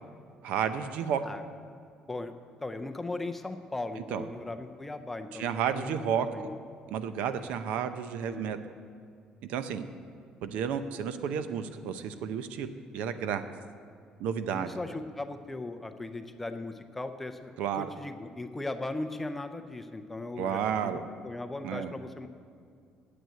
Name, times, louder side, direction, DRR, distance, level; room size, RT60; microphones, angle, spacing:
voice 1, 0.4-1.2 4.1-4.3 5.3-6.3 6.9-8.6 9.5-9.9 10.4-12.7 12.9-13.4 14.2-14.7 17.6-17.9 20.4-21.0 21.6-21.9, right 8 dB, 75° right, 10 dB, 0.7 m, -31 dB
voice 2, 2.6-5.9 6.3-6.6 8.3-8.5 14.5-22.3, left 2 dB, 10° left, 7 dB, 0.5 m, -38 dB
9.2 x 8.0 x 9.1 m, 2.3 s
cardioid pair, 175°, 2 cm